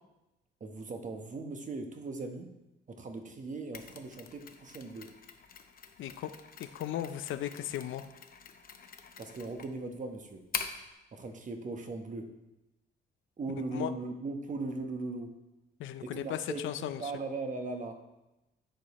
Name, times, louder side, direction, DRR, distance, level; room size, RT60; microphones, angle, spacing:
voice 1, 0.6-2.5 2.9-5.1 9.2-10.5 11.1-12.3 13.4-15.3 16.0-18.0, right 3 dB, 40° right, 5 dB, 1.1 m, -39 dB
Mechanisms, 3.7-10.9, left 6 dB, 45° left, 0.8 m, -44 dB
voice 2, 6.0-6.3 6.6-8.0 13.7-13.9 15.8-17.1, left 11 dB, 75° left, 11 dB, 0.5 m, -36 dB
10.0 x 4.9 x 4.2 m, 0.99 s
cardioid pair, 90°, 20 cm